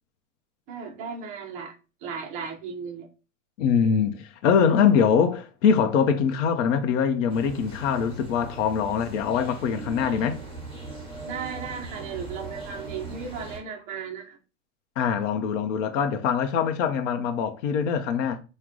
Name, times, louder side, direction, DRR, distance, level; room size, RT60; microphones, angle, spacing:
voice 1, 0.7-1.7 2.0-3.1 11.2-14.4, right 6 dB, 20° right, 0.4 m, -35 dB
voice 2, 3.6-10.4 15.0-18.4, left 7 dB, 70° left, 0.7 m, -23 dB
sound 1, 7.3-13.6, right 3 dB, 15° left, 1.3 m, -39 dB
4.7 x 2.2 x 3.7 m
supercardioid pair, 165°, 38 cm